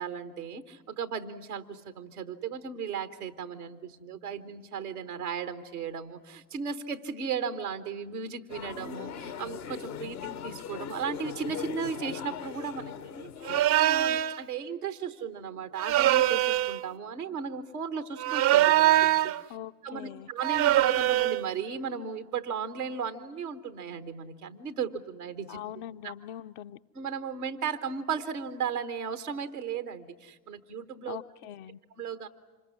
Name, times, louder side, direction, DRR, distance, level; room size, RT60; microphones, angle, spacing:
voice 1, 0.0-19.0 19.5-19.6 19.8-25.6 26.0-26.1 26.9-31.2 32.0-32.3, right 6 dB, 85° right, 11 dB, 1.2 m, -36 dB
sound 1, 8.5-13.7, left 8 dB, 75° left, 1.3 m, -39 dB
sound 2, 13.5-14.4 15.8-16.8 18.2-19.4 20.4-21.4, right 14 dB, 60° right, 0.8 m, -23 dB
voice 2, 19.5-20.3 25.5-26.8 31.1-31.8, left 11 dB, 60° left, 9 dB, 0.8 m, -42 dB
26.5 x 21.0 x 9.6 m, 1.2 s
figure-of-eight pair, 45°, 44 cm